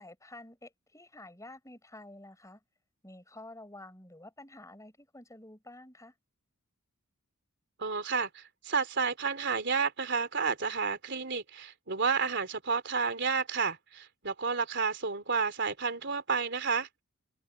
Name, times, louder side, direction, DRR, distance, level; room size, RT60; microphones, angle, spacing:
voice 1, 0.0-2.6 3.0-6.1, left 1 dB, 15° left, 7.5 m, -50 dB
voice 2, 7.8-17.0, right 5 dB, 55° right, 3.5 m, -31 dB
head